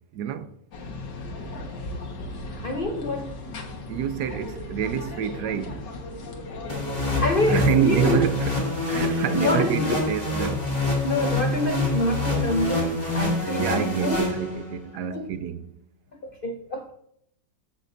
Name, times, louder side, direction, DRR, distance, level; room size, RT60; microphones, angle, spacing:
voice 1, 0.1-0.5 3.9-5.9 7.5-10.7 13.6-15.7, right 9 dB, 70° right, 1.0 m, -27 dB
sound 1, 0.7-8.5, left 2 dB, 70° left, 1.9 m, -37 dB
voice 2, 2.6-3.5 6.9-8.2 9.1-10.0 11.0-14.2 15.1-15.3 16.2-16.9, left 1 dB, 85° left, 0.4 m, -27 dB
sound 2, 6.7-14.9, left 2 dB, 20° left, 2.4 m, -26 dB
14.0 x 5.9 x 2.6 m
omnidirectional pair, 2.0 m